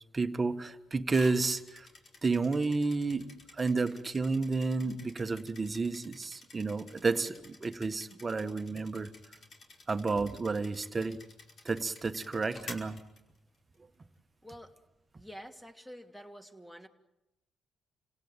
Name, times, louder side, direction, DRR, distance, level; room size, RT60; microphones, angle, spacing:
voice 1, 0.1-1.9 2.2-3.3 3.6-9.1 9.9-11.2 11.6-13.0, right 3 dB, 30° right, 9 dB, 1.6 m, -31 dB
sound 1, 1.1-13.8, left 3 dB, 50° left, 5.3 m, -52 dB
voice 2, 14.4-14.7 15.1-16.9, equal, 5° left, 6 dB, 2.7 m, -48 dB
29.0 x 17.5 x 9.2 m, 0.92 s
cardioid pair, 85°, 0 cm